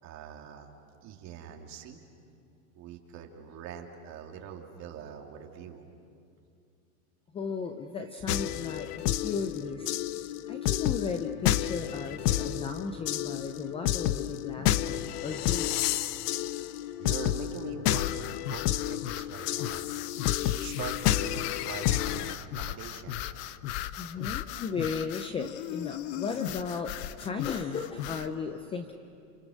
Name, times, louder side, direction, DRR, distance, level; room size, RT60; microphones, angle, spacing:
voice 1, 0.0-2.0 2.7-5.8 16.5-19.8 20.4-23.2, right 8 dB, 35° right, 1 dB, 2.9 m, -43 dB
voice 2, 7.3-9.9 10.5-15.7 24.0-28.9, left 5 dB, 10° left, 7 dB, 0.5 m, -35 dB
sound 1, 8.3-22.4, left 13 dB, 70° left, 0.9 m, -30 dB
sound 2, 17.8-28.3, left 12 dB, 45° left, 0.7 m, -38 dB
29.0 x 28.5 x 6.5 m, 2.5 s
supercardioid pair, 150°, 47 cm